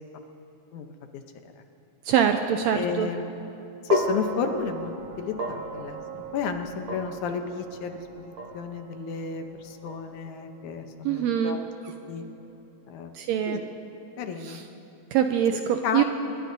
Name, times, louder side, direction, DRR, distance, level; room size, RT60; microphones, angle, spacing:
voice 1, 2.1-3.1 11.0-11.6 13.1-13.6 14.4-14.6 15.1-16.0, right 9 dB, 80° right, 6 dB, 1.6 m, -24 dB
voice 2, 2.7-3.2 3.8-4.9 5.2-6.0 6.3-11.6 12.1-12.2 12.9-13.1 13.5-13.6 14.2-14.6 15.8-16.0, left 6 dB, 75° left, 6 dB, 2.2 m, -31 dB
sound 1, 3.9-12.2, right 3 dB, 65° right, 2.2 m, -37 dB
24.5 x 22.0 x 2.7 m, 2.8 s
omnidirectional pair, 3.6 m